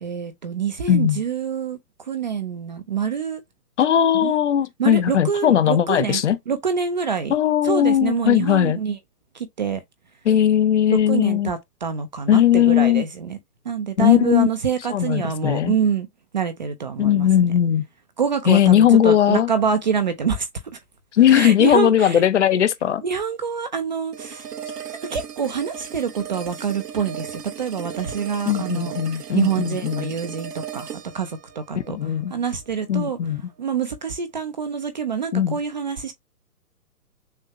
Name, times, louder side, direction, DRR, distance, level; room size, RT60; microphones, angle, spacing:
voice 1, 0.0-1.8 2.1-3.4 4.1-4.4 4.8-7.3 7.6-9.0 9.3-9.8 11.1-13.4 13.7-16.1 16.3-17.3 18.2-20.5 21.3-22.2 23.0-24.5 25.1-29.0 29.3-30.9 31.1-32.0 32.3-33.2 33.6-36.1, right 6 dB, 30° right, 0.5 m, -26 dB
voice 2, 0.9-1.2 3.8-6.4 7.3-8.8 10.2-11.5 12.3-13.0 14.0-14.5 14.9-15.8 17.0-17.8 18.5-19.5 21.1-23.0 28.5-30.1 31.7-32.3 32.9-33.4 35.3-35.6, left 10 dB, 50° left, 0.7 m, -18 dB
sound 1, 24.1-33.2, right 8 dB, 80° right, 0.9 m, -37 dB
6.5 x 2.4 x 2.9 m
hypercardioid pair, 135°, 47 cm